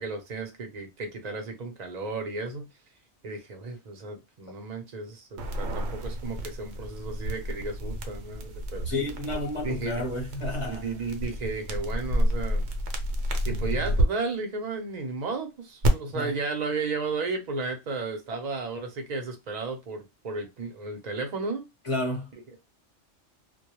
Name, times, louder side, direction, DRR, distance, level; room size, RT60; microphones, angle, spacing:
voice 1, 0.0-2.7 3.2-8.9 9.6-10.0 10.6-12.7 13.5-21.6, right 3 dB, 45° right, 0.6 m, -34 dB
sound 1, 5.4-14.0 15.8-15.9, equal, 70° right, 0.8 m, -30 dB
voice 2, 8.8-10.8 16.1-16.3 21.8-22.3, left 2 dB, 35° left, 0.6 m, -31 dB
2.2 x 2.1 x 2.9 m
omnidirectional pair, 1.2 m